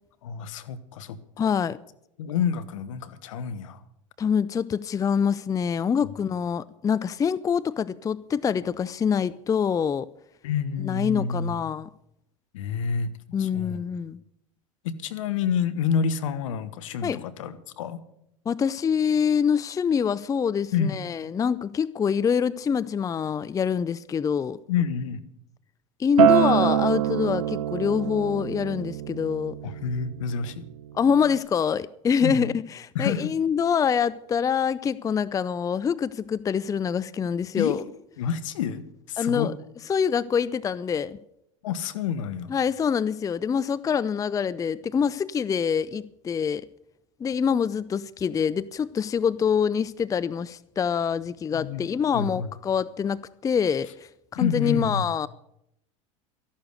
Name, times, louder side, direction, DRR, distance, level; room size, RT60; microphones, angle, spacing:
voice 1, 0.2-1.2 2.2-3.8 6.0-6.1 10.4-11.6 12.5-13.1 13.4-13.9 14.8-18.0 20.7-21.0 24.7-25.2 29.6-30.7 32.2-32.5 32.9-33.3 37.6-37.8 38.2-39.5 41.6-42.5 51.5-51.8 52.1-52.5 54.3-55.1, left 7 dB, 75° left, 1.3 m, -28 dB
voice 2, 1.4-1.8 4.2-10.1 10.8-11.9 13.3-14.2 17.0-17.2 18.5-24.6 26.0-29.5 30.9-37.8 39.2-39.6 39.9-41.2 42.5-46.7 47.2-55.3, left 7 dB, 20° left, 0.5 m, -25 dB
Acoustic guitar, 26.2-31.4, right 11 dB, 80° right, 0.9 m, -25 dB
14.0 x 11.5 x 6.6 m
hypercardioid pair, 90°, 17 cm